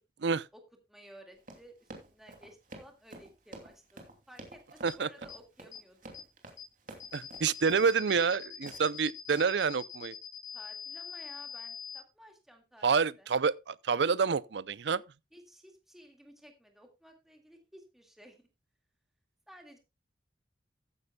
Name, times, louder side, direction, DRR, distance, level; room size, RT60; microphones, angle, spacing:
voice 1, 0.2-0.6 0.9-6.1 10.5-12.9 13.2-13.3 15.3-18.5 19.5-19.8, equal, ahead, 1.9 m, -55 dB
Run, 1.4-8.3 8.7-9.0 9.3-9.7, right 2 dB, 50° right, 2.8 m, -49 dB
sound 1, 4.9-5.0 5.3-5.4 5.7-5.8 6.1-6.2 6.6-6.7 7.0-12.0, left 7 dB, 40° left, 3.4 m, -44 dB
voice 2, 7.1-10.1 12.8-15.0, right 5 dB, 85° right, 0.5 m, -28 dB
14.5 x 9.7 x 2.3 m
head